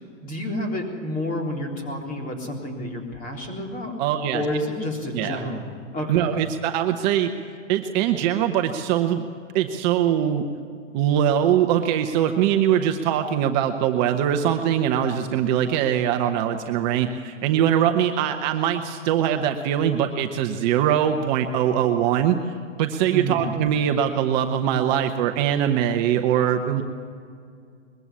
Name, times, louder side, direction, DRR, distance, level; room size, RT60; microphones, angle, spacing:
voice 1, 0.2-3.9 4.3-6.4 23.1-23.5, left 1 dB, 20° left, 1 dB, 3.6 m, -30 dB
voice 2, 4.0-4.4 5.1-5.4 6.1-7.3 7.7-9.3 9.5-10.5 10.9-22.4 22.8-26.8, right 10 dB, 35° right, 6 dB, 1.0 m, -22 dB
21.0 x 15.0 x 8.5 m, 2.3 s
hypercardioid pair, 125°, 38 cm